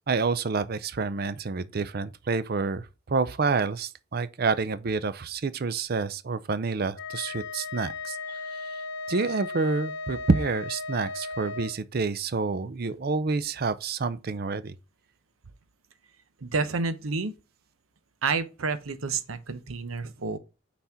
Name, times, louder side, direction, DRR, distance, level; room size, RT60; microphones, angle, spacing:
voice 1, 0.1-8.8 9.1-14.7, right 4 dB, 45° right, 0.5 m, -28 dB
Wind instrument woodwind instrument, 6.9-11.8, left 3 dB, 55° left, 0.9 m, -36 dB
voice 2, 16.4-17.3 18.2-20.4, right 4 dB, 85° right, 0.8 m, -29 dB
5.9 x 4.2 x 4.3 m
head